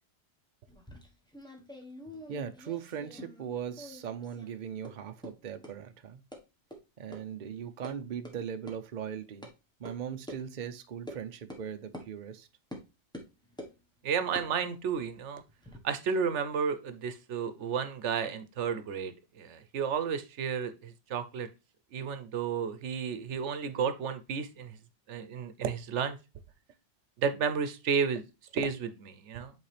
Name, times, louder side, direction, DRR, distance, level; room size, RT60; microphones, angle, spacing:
sound 1, 0.7-3.5 3.7-4.5 4.8-4.9 5.2-5.3 5.6-5.7 6.3-6.4 6.7-6.8 7.1-7.2 7.5-7.9 8.3-8.4 8.7-8.8 9.4-9.5 9.9-10.0 10.3-10.4 11.1-11.2 11.5-11.6 11.9-12.1 12.7-12.8 13.1-13.8 14.3-15.8, equal, 5° left, 1.2 m, -46 dB
voice 1, 2.3-6.2 7.0-9.5 9.8-12.5, right 8 dB, 50° right, 0.7 m, -39 dB
voice 2, 14.0-15.4 15.8-21.5 21.9-24.7 25.1-26.2 27.2-28.2 28.5-29.5, right 6 dB, 80° right, 1.0 m, -32 dB
8.2 x 3.8 x 3.3 m
omnidirectional pair, 1.2 m